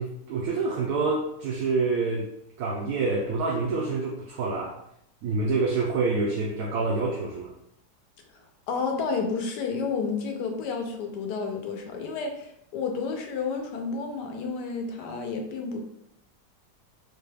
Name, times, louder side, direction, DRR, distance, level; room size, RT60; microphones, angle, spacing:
voice 1, 0.0-2.3 2.6-4.8 5.2-7.5, right 3 dB, 75° right, -2 dB, 1.1 m, -27 dB
voice 2, 8.7-15.8, left 4 dB, 85° left, 3 dB, 1.3 m, -31 dB
4.1 x 2.3 x 3.2 m, 0.76 s
omnidirectional pair, 1.7 m